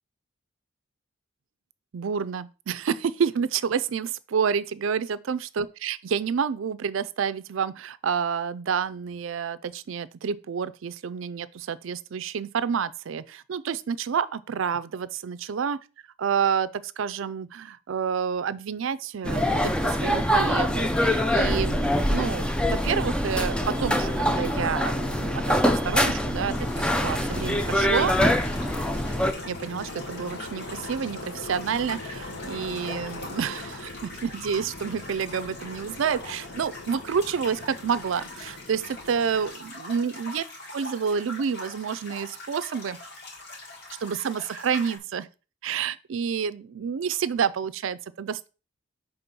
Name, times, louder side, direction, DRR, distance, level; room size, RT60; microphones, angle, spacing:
voice 1, 1.9-15.8 16.2-28.1 29.4-40.4 40.7-43.0 44.0-45.3 45.6-48.5, right 7 dB, 70° right, 0.4 m, -29 dB
sound 1, 19.2-29.3, equal, 5° left, 0.4 m, -24 dB
sound 2, 23.5-39.5, left 2 dB, 75° left, 1.2 m, -40 dB
sound 3, 26.5-45.0, left 2 dB, 55° left, 1.8 m, -42 dB
6.0 x 3.5 x 5.3 m
head